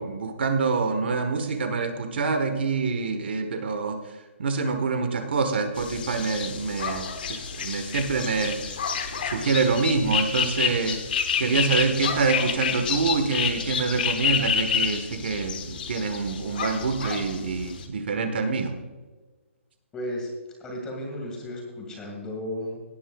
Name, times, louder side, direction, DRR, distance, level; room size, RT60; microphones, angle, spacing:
voice 1, 0.0-8.8 9.1-18.7, right 4 dB, 50° right, 7 dB, 1.3 m, -26 dB
sound 1, 5.8-17.9, left 7 dB, 45° left, 1.3 m, -29 dB
voice 2, 19.9-20.3 20.6-22.8, left 1 dB, 10° left, 0 dB, 1.9 m, -34 dB
17.5 x 9.6 x 2.3 m, 1.3 s
hypercardioid pair, 170°, 7 cm